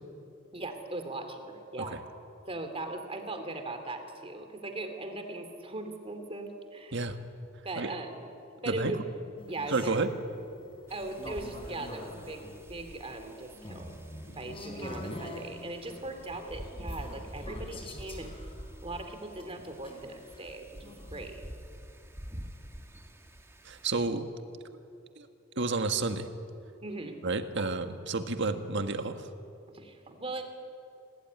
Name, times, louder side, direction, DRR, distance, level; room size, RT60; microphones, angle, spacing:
voice 1, 0.5-2.0 2.5-7.0 7.6-8.2 8.6-9.1 9.5-10.0 10.9-12.4 12.7-13.9 14.3-18.3 18.8-21.4 26.8-27.2 27.6-27.7 29.7-30.4, right 2 dB, 30° right, 6 dB, 2.9 m, -39 dB
sound 1, 9.4-21.3, left 1 dB, 25° left, 3.8 m, -45 dB
voice 2, 9.7-10.1 14.3-14.4 23.6-24.2 25.2-25.3 25.6-26.3 27.2-29.3, right 3 dB, 60° right, 7 dB, 1.6 m, -31 dB
Wind, 10.9-24.1, equal, 15° right, 1.6 m, -47 dB
26.5 x 18.0 x 9.5 m, 2.7 s
head